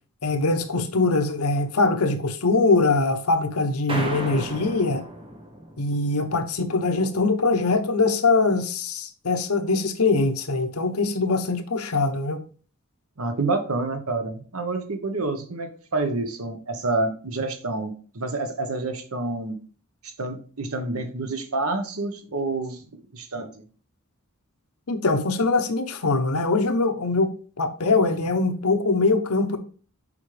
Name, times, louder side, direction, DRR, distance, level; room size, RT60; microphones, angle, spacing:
voice 1, 0.2-5.1 5.8-12.4 24.9-27.3 27.6-29.6, left 3 dB, 85° left, 0.9 m, -22 dB
sound 1, 3.9-6.3, right 1 dB, 25° right, 1.2 m, -33 dB
voice 2, 13.2-19.6 20.0-22.8 23.1-23.5, right 3 dB, 75° right, 1.1 m, -28 dB
7.4 x 5.2 x 3.3 m
head